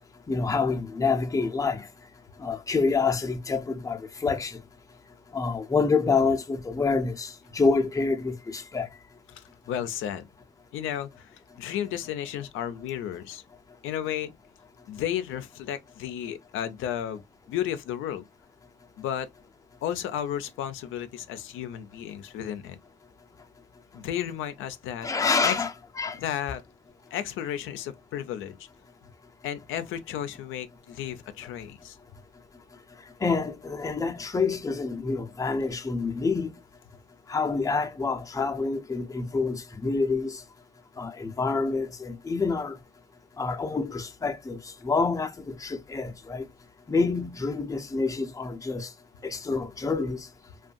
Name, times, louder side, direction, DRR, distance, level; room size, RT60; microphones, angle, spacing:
voice 1, 0.3-1.9 2.4-4.6 5.3-8.9 25.0-25.7 26.0-26.2 33.2-36.5 37.3-40.4 41.0-42.8 43.4-46.5 46.9-48.9 49.2-50.3, left 4 dB, 15° left, 0.5 m, -27 dB
voice 2, 9.3-10.3 10.7-13.4 13.8-14.3 14.9-17.2 17.5-18.2 19.0-19.3 19.8-22.8 23.9-25.1 25.4-25.6 26.2-26.6 27.1-28.6 29.4-32.0, left 10 dB, 85° left, 0.4 m, -33 dB
2.5 x 2.2 x 2.4 m
cardioid pair, 90°, 20 cm